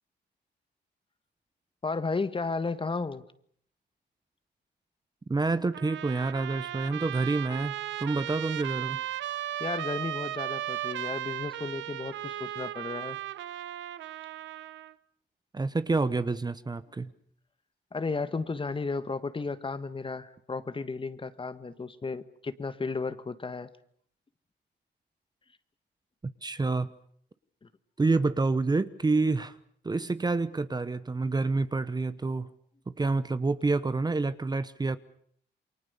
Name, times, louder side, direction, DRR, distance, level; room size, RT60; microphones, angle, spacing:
voice 1, 1.8-3.2 9.6-13.2 17.9-23.7 27.6-27.7, left 4 dB, 30° left, 13 dB, 1.5 m, -33 dB
voice 2, 5.3-7.7 8.0-9.0 15.5-17.1 26.2-26.9 28.0-29.6 29.8-32.5 33.0-35.0, right 3 dB, 20° right, 14 dB, 1.0 m, -28 dB
Trumpet, 5.7-14.9, right 13 dB, 85° right, 1.0 m, -36 dB
28.5 x 23.5 x 6.9 m, 0.63 s
cardioid pair, 95°, 19 cm